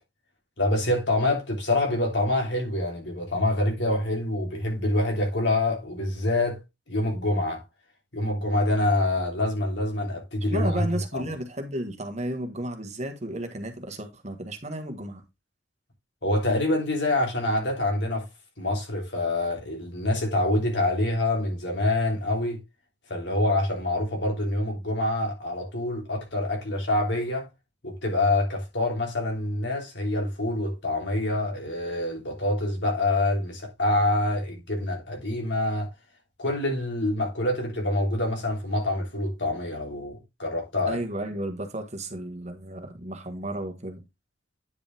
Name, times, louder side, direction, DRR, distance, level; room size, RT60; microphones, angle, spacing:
voice 1, 0.6-6.6 6.9-7.6 8.1-10.8 11.1-11.2 16.2-18.3 18.6-22.6 23.1-27.5 27.8-35.9 36.4-41.0, left 1 dB, 75° left, 3.4 m, -26 dB
voice 2, 10.5-15.2 40.9-44.0, right 1 dB, 40° right, 1.5 m, -33 dB
9.6 x 5.1 x 3.5 m
head